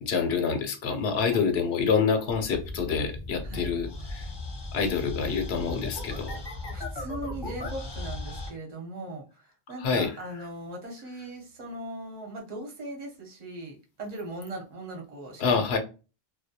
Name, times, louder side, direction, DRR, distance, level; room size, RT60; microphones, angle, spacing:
voice 1, 0.0-4.3 4.7-6.4 9.8-10.1 15.4-15.8, left 5 dB, 90° left, 5 dB, 0.9 m, -27 dB
sound 1, 2.4-8.5, left 2 dB, 30° left, 0.5 m, -37 dB
voice 2, 6.7-15.8, right 2 dB, 45° right, -1 dB, 0.9 m, -39 dB
2.2 x 2.2 x 2.7 m, 0.32 s
omnidirectional pair, 1.0 m